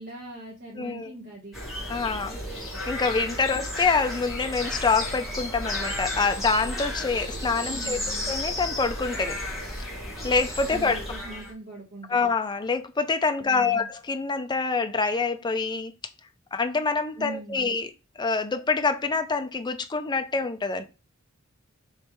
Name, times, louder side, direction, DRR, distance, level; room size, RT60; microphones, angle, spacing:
voice 1, 0.0-1.6 3.5-3.6 7.6-8.3 10.7-12.3 13.4-13.9 17.2-17.7, right 2 dB, 50° right, 1.2 m, -41 dB
voice 2, 0.8-1.1 1.9-8.0 8.3-9.3 9.8-9.9 10.2-11.0 12.1-15.9 16.5-17.9 18.2-20.8, left 4 dB, 20° left, 0.5 m, -26 dB
sound 1, 1.5-11.5, left 1 dB, ahead, 1.5 m, -33 dB
3.3 x 3.2 x 4.4 m
head